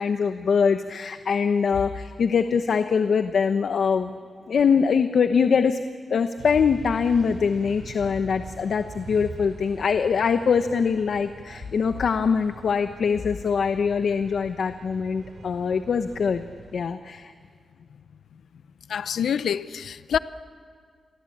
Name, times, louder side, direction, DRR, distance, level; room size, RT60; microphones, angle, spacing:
voice 1, 0.0-4.1 4.5-5.8 6.1-16.4 16.7-17.3, left 6 dB, 65° left, 0.9 m, -23 dB
sound 1, 6.4-16.8, right 5 dB, 70° right, 3.1 m, -43 dB
voice 2, 18.9-20.2, left 8 dB, 90° left, 0.6 m, -26 dB
29.5 x 23.0 x 8.6 m
wide cardioid pair, 145°, 0 cm